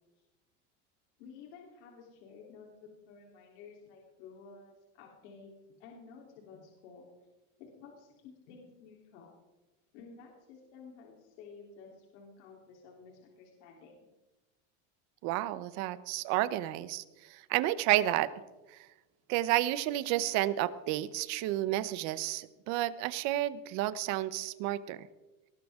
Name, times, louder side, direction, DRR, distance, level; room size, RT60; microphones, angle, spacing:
voice 1, 1.2-5.5 5.8-7.1 7.6-9.4 9.9-13.9, left 5 dB, 80° left, -1 dB, 3.5 m, -53 dB
voice 2, 15.2-17.0 17.3-18.3 19.3-25.1, right 15 dB, 50° right, 16 dB, 0.9 m, -31 dB
20.0 x 19.0 x 3.7 m, 1.1 s
cardioid pair, 170°, 35 cm